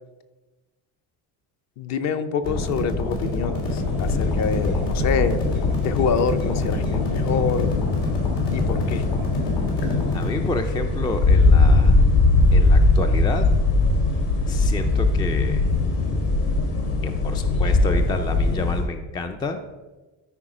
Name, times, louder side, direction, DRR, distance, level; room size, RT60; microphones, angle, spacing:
voice 1, 1.8-5.4 5.8-7.7 8.5-9.0, left 6 dB, 45° left, 10 dB, 0.7 m, -26 dB
sound 1, 2.4-10.4, left 2 dB, 90° left, 3.1 m, -27 dB
sound 2, 3.0-18.8, left 3 dB, 65° left, 3.0 m, -21 dB
voice 2, 10.1-12.0 12.5-13.5 14.5-15.7 17.0-19.6, left 2 dB, 10° left, 7 dB, 0.3 m, -29 dB
13.0 x 4.8 x 5.0 m, 1.2 s
cardioid pair, 155°, 40 cm